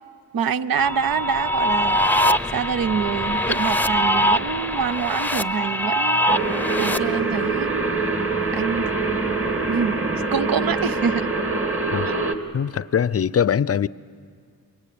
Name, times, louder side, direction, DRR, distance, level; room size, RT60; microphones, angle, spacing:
voice 1, 0.3-2.1 2.5-6.4 6.8-7.8 8.5-11.3, right 7 dB, 65° right, 0.7 m, -26 dB
sound 1, 0.8-7.0, equal, 5° left, 0.7 m, -22 dB
sound 2, 6.3-12.4, right 3 dB, 35° right, 2.3 m, -24 dB
voice 2, 12.5-13.9, left 8 dB, 40° left, 0.6 m, -22 dB
25.0 x 23.0 x 8.6 m
supercardioid pair, 45°, 38 cm